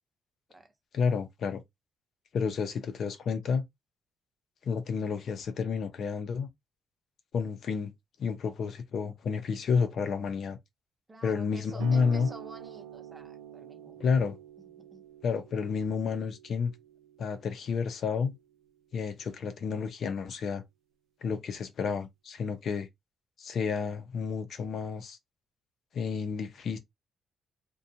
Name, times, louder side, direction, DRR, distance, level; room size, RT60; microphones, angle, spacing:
voice 1, 0.9-1.6 2.3-3.7 4.6-6.5 7.3-7.9 8.2-10.6 11.2-12.3 14.0-14.4 15.2-16.7 17.2-18.4 18.9-20.6 21.2-22.9 23.4-25.2 25.9-26.8, left 5 dB, 60° left, 0.6 m, -30 dB
voice 2, 11.1-14.1 14.6-15.0, right 2 dB, 20° right, 0.8 m, -50 dB
sound 1, 11.8-18.9, right 9 dB, 90° right, 0.4 m, -47 dB
2.5 x 2.2 x 2.8 m
cardioid pair, 90°, 0 cm